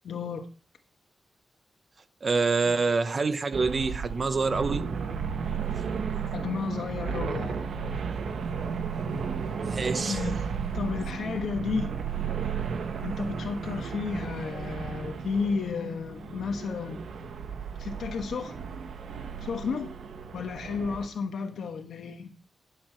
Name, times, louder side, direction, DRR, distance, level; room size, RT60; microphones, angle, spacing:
voice 1, 0.0-0.5 2.7-2.8 6.3-7.6 10.1-10.5 10.7-11.9 13.0-17.1 17.8-18.6 19.4-19.9 20.3-22.4, left 5 dB, 75° left, 1.2 m, -32 dB
voice 2, 2.2-4.9 9.6-10.2, right 4 dB, 35° right, 0.9 m, -26 dB
sound 1, 3.5-21.1, right 6 dB, 85° right, 1.1 m, -34 dB
10.5 x 7.8 x 4.5 m
wide cardioid pair, 170°, 0 cm